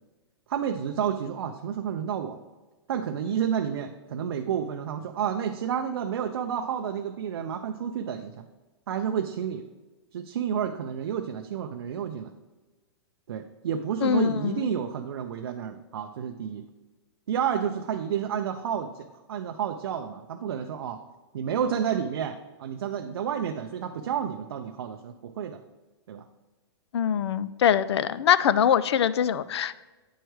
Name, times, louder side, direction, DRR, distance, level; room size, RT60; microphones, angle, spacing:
voice 1, 0.5-2.4 2.9-8.5 8.9-9.7 10.1-12.3 13.3-16.6 17.3-21.0 21.3-25.6 26.1-26.2, right 8 dB, 65° right, 5 dB, 0.4 m, -30 dB
voice 2, 14.0-14.6 26.9-29.8, left 9 dB, 75° left, 17 dB, 0.4 m, -23 dB
9.0 x 4.6 x 3.1 m, 1.2 s
hypercardioid pair, 175°, 14 cm